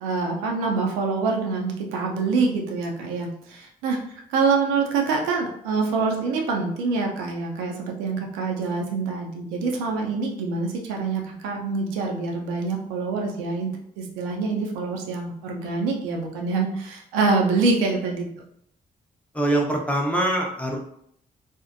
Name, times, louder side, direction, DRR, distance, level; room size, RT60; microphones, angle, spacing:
voice 1, 0.0-18.3, right 4 dB, 85° right, 1 dB, 0.4 m, -25 dB
voice 2, 19.3-20.8, right 1 dB, 5° left, 0 dB, 0.7 m, -23 dB
2.5 x 2.0 x 2.4 m, 0.68 s
hypercardioid pair, 45°, 21 cm